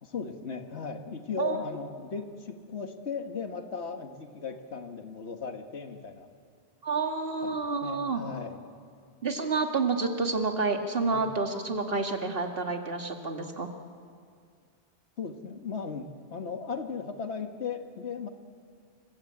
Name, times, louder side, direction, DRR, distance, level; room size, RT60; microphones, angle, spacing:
voice 1, 0.0-6.3 7.4-8.6 11.1-11.3 15.2-18.3, left 5 dB, 70° left, 6 dB, 1.8 m, -37 dB
voice 2, 6.8-8.2 9.2-13.7, right 4 dB, 55° right, 4 dB, 2.1 m, -29 dB
27.0 x 24.0 x 8.8 m, 2.2 s
omnidirectional pair, 1.2 m